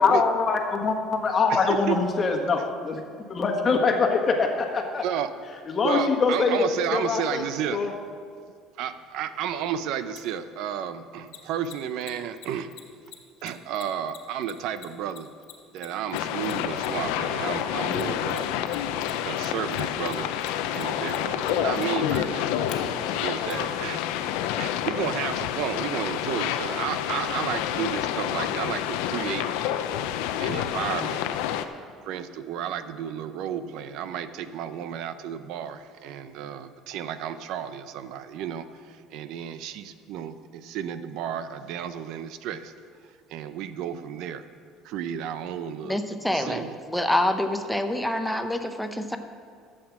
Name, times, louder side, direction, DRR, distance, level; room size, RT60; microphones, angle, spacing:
voice 1, 0.0-3.0 3.3-5.0 5.7-7.4 7.7-7.9, left 4 dB, 30° left, 3 dB, 1.4 m, -23 dB
voice 2, 1.5-2.0 5.0-5.3 5.8-7.9 8.8-12.7 13.4-15.3 15.7-18.6 19.2-20.4 20.7-24.0 24.6-29.5 30.4-31.2 32.0-42.7 43.3-44.5 44.8-46.0 46.3-46.8, right 9 dB, 70° right, 12 dB, 0.6 m, -32 dB
Mechanisms, 10.1-10.2 11.3-17.1 17.9-18.8 19.0-22.8 23.5-23.6, left 13 dB, 65° left, 1.6 m, -45 dB
sound 1, 16.1-31.6, left 10 dB, 90° left, 0.6 m, -28 dB
voice 3, 45.8-49.2, left 1 dB, ahead, 6 dB, 0.8 m, -26 dB
12.5 x 7.7 x 6.0 m, 2.1 s
cardioid pair, 130°, 0 cm